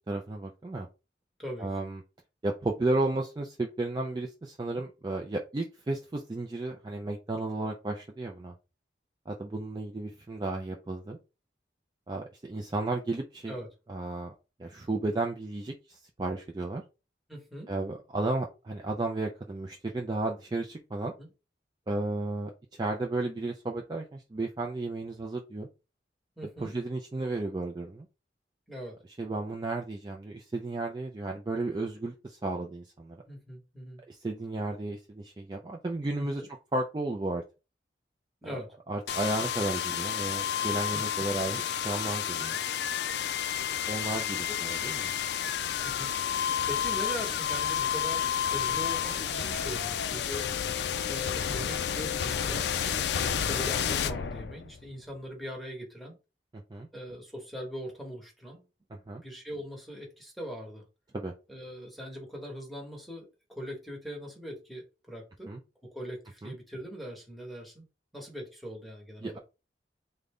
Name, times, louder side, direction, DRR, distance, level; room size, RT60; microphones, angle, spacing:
voice 1, 0.1-0.9 1.6-2.0 2.4-8.5 9.3-11.2 12.1-13.6 13.9-14.3 14.6-16.8 17.7-21.1 21.9-22.5 22.8-25.7 26.6-28.1 29.2-33.2 34.1-36.4 36.7-37.4 38.4-38.5 38.9-42.6 43.9-45.1 56.5-56.9 59.1-59.2 61.1-61.3 65.5-65.6 66.4-66.5 69.2-69.4, right 2 dB, 25° right, 1 dB, 0.3 m, -33 dB
voice 2, 1.4-1.8 4.7-4.8 13.5-13.7 17.3-17.7 21.2-21.3 26.4-26.7 28.7-29.0 33.3-34.0 36.2-36.5 38.4-38.7 40.6-41.3 43.9-44.0 44.5-44.6 45.8-50.5 51.1-52.7 53.1-56.1 56.9-58.7 59.2-60.8 61.5-65.5 65.8-67.8 68.1-69.4, equal, ahead, -1 dB, 1.0 m, -41 dB
Video Distortion, 39.1-54.9, left 8 dB, 70° left, 0.3 m, -30 dB
3.7 x 2.1 x 3.5 m, 0.29 s
head